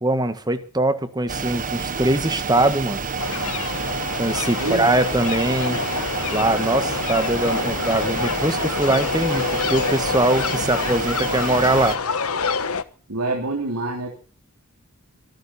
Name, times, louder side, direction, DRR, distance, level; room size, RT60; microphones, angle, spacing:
voice 1, 0.0-3.0 4.2-5.8 6.3-12.0, right 2 dB, 20° right, 10 dB, 1.7 m, -22 dB
sound 1, 1.3-12.0, right 5 dB, 35° right, 1.3 m, -29 dB
sound 2, 3.2-12.8, left 5 dB, 70° left, 1.2 m, -27 dB
voice 2, 13.1-14.1, right 2 dB, 75° right, 0 dB, 3.5 m, -26 dB
25.0 x 12.0 x 4.4 m, 0.40 s
head